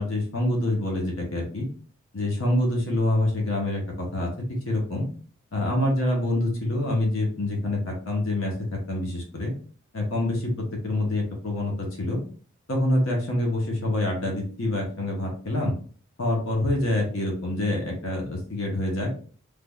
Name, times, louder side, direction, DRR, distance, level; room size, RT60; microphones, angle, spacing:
voice 1, 0.0-1.7 2.1-4.3 4.7-5.1 5.5-9.5 9.9-12.2 12.7-15.7 16.2-19.1, left 1 dB, 70° left, 0 dB, 1.0 m, -26 dB
3.5 x 3.2 x 2.3 m, 0.42 s
head